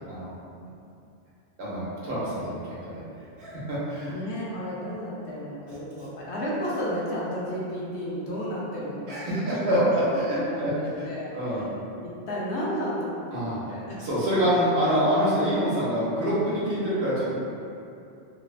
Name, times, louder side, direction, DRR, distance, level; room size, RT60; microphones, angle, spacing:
voice 1, 1.6-3.0 3.4-4.2 9.1-11.1 11.3-11.6 13.3-13.6 14.0-17.4, equal, 70° right, -9 dB, 1.0 m, -26 dB
voice 2, 4.1-9.4 9.7-11.7 12.0-14.0, equal, 75° left, -6 dB, 0.8 m, -32 dB
2.5 x 2.1 x 2.3 m, 2.6 s
omnidirectional pair, 1.2 m